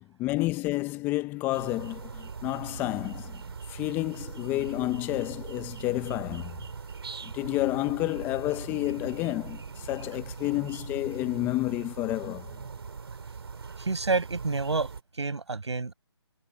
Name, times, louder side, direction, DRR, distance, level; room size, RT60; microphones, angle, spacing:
voice 1, 0.0-3.4 3.7-6.6 7.2-12.5, left 18 dB, 15° left, 1.1 m, -30 dB
sound 1, 1.5-15.0, right 5 dB, 65° right, 4.6 m, -41 dB
voice 2, 13.8-14.9 15.2-15.9, right 3 dB, 80° right, 7.6 m, -28 dB
figure-of-eight pair, 155°, 14 cm